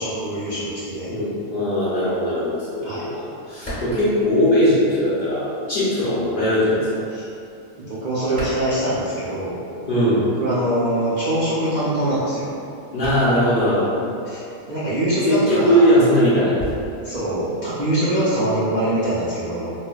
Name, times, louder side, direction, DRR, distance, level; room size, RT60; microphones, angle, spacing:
voice 1, 0.0-1.1 2.8-3.1 7.1-7.2 7.9-9.6 10.1-12.5 14.3-15.8 17.0-19.7, right 1 dB, 65° right, -10 dB, 0.4 m, -23 dB
voice 2, 1.1-2.9 3.1-6.9 9.9-10.2 12.9-13.9 15.3-16.6, equal, 50° left, -10 dB, 0.7 m, -19 dB
sound 1, 3.6-5.2 5.4-9.6 9.8-18.6, equal, 35° left, 1.2 m, -37 dB
4.2 x 2.2 x 2.3 m, 2.6 s
omnidirectional pair, 1.5 m